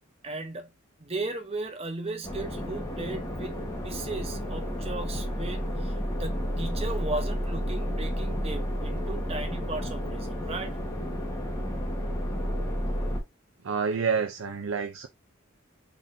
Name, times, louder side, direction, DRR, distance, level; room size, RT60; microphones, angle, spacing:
voice 1, 0.2-0.7 1.0-10.8, right 2 dB, 30° right, 0.8 m, -36 dB
sound 1, 2.2-13.2, equal, 15° left, 1.2 m, -31 dB
voice 2, 13.6-15.1, right 5 dB, 80° right, 0.5 m, -28 dB
4.3 x 3.6 x 2.6 m
head